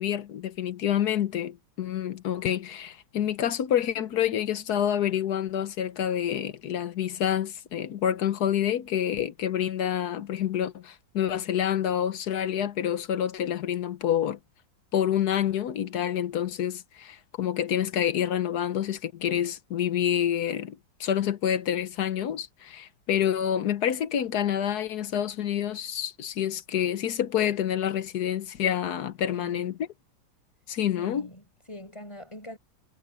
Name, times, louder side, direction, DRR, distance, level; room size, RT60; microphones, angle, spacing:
voice 1, 0.0-14.4 14.9-29.8 30.7-31.3, left 10 dB, 60° left, 1.3 m, -28 dB
voice 2, 29.3-29.7 31.0-32.6, left 1 dB, 15° left, 6.6 m, -44 dB
omnidirectional pair, 2.0 m